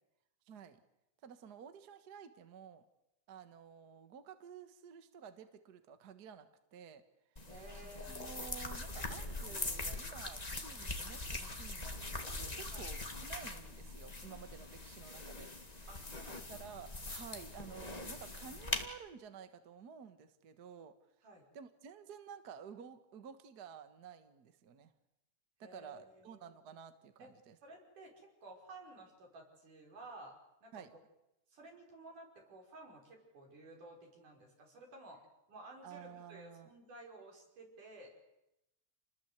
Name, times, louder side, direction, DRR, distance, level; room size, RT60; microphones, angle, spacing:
voice 1, 0.5-0.8 1.2-2.8 3.3-7.0 7.8-15.9 16.5-20.9 21.5-24.9 25.6-27.6 30.7-30.9 35.8-36.7, right 7 dB, 45° right, 9 dB, 1.5 m, -52 dB
sound 1, 7.4-18.9, left 2 dB, 20° left, 1.2 m, -42 dB
voice 2, 7.5-8.5 12.7-12.9 15.9-16.5 21.2-21.4 25.6-26.4 27.2-27.3 27.6-30.3 30.6-30.8 31.5-35.2 35.5-38.1, right 2 dB, 85° right, 0 dB, 7.2 m, -54 dB
28.5 x 20.0 x 8.2 m, 0.89 s
omnidirectional pair, 3.5 m